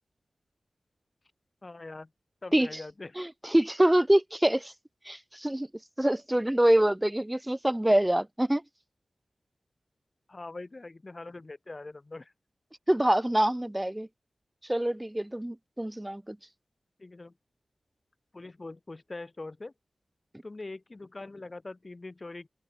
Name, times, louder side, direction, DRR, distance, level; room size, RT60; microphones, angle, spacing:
voice 1, 1.6-2.1 2.4-3.3 10.3-12.3 17.0-17.3 18.3-19.7 20.4-22.5, left 2 dB, 40° left, 1.9 m, -42 dB
voice 2, 3.2-4.7 5.1-5.7 6.0-8.6 12.9-14.1 14.7-16.4, right 1 dB, 15° right, 0.6 m, -25 dB
cardioid pair, 60°, 0 cm